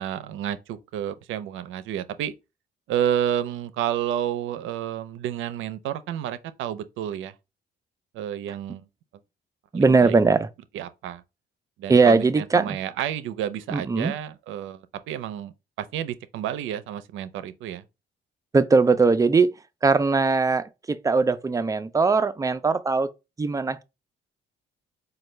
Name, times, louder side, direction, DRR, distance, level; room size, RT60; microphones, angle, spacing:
voice 1, 0.0-2.3 2.9-7.3 8.1-8.9 9.7-10.2 10.7-11.2 11.8-15.5 15.8-17.8, right 10 dB, 85° right, 0.4 m, -30 dB
voice 2, 9.7-10.5 11.9-12.8 13.7-14.1 18.5-19.5 19.8-23.1 23.4-23.8, right 4 dB, 15° right, 0.3 m, -20 dB
4.3 x 2.2 x 3.1 m
cardioid pair, 90°, 20 cm